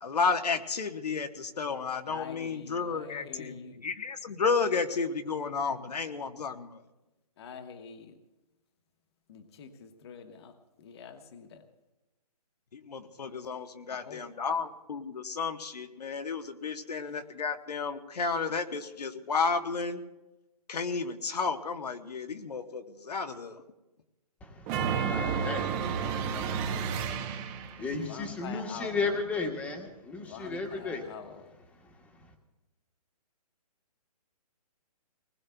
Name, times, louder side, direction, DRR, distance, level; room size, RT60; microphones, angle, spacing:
voice 1, 0.0-6.8 12.7-20.0 20.7-23.6, left 5 dB, 80° left, 7 dB, 1.2 m, -32 dB
voice 2, 2.1-3.8 7.4-8.2 9.3-11.6 13.9-14.6 17.1-17.2 27.8-29.2 30.1-31.5, left 6 dB, 40° left, 6 dB, 1.1 m, -46 dB
voice 3, 24.4-31.0 31.8-31.9, left 3 dB, 5° left, 2 dB, 1.2 m, -36 dB
sound 1, 24.7-27.9, right 6 dB, 20° right, 0.8 m, -31 dB
25.0 x 20.0 x 2.3 m, 1.0 s
hypercardioid pair, 155°, 20 cm